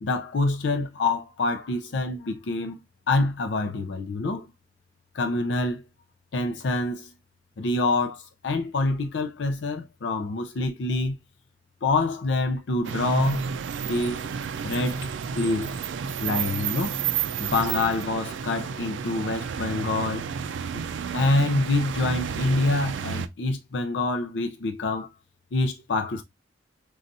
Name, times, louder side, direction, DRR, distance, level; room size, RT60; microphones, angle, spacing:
voice 1, 0.0-2.8 3.1-4.5 5.1-5.8 6.3-7.1 7.6-11.2 11.8-13.5 13.8-14.3 14.6-15.1 15.3-15.8 16.2-17.0 17.4-20.3 20.7-20.8 21.1-25.1 25.5-26.2, left 2 dB, 70° left, 0.5 m, -26 dB
sound 1, 12.8-23.3, right 7 dB, 75° right, 0.3 m, -31 dB
4.0 x 2.3 x 2.5 m
head